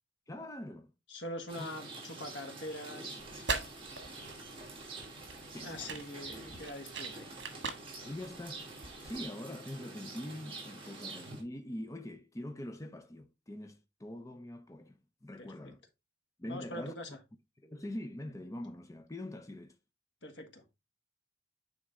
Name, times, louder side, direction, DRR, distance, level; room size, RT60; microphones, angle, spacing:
voice 1, 0.3-0.9 1.6-1.7 4.3-5.1 5.5-6.0 8.0-8.7 9.0-15.8 16.4-16.9 17.6-19.8, left 1 dB, 15° left, 0.6 m, -44 dB
voice 2, 1.1-3.2 5.6-7.3 15.4-15.7 16.5-17.1 20.2-20.6, left 1 dB, 80° left, 1.5 m, -43 dB
Rain, 1.5-11.4, right 3 dB, 30° right, 2.8 m, -47 dB
sound 1, 3.2-9.2, right 4 dB, 70° right, 1.4 m, -41 dB
9.4 x 3.5 x 3.6 m
head